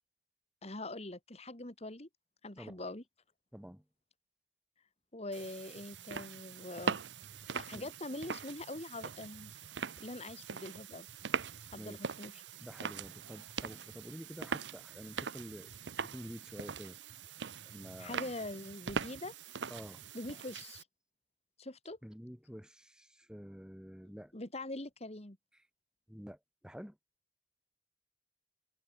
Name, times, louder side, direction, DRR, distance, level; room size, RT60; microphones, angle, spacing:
voice 1, 0.6-2.1 2.4-3.0 5.1-7.0 7.5-9.7 10.0-11.1 11.7-12.3 18.0-19.3 20.1-20.8 21.6-22.0 24.3-25.4, left 2 dB, 35° left, 2.3 m, -43 dB
voice 2, 3.5-3.8 7.7-7.9 11.8-12.0 12.6-15.7 16.0-17.0 17.6-18.3 19.7-20.0 22.0-24.3 25.5-25.6 26.1-27.0, equal, 5° right, 2.4 m, -49 dB
sound 1, 5.3-20.8, right 6 dB, 80° right, 0.8 m, -42 dB
head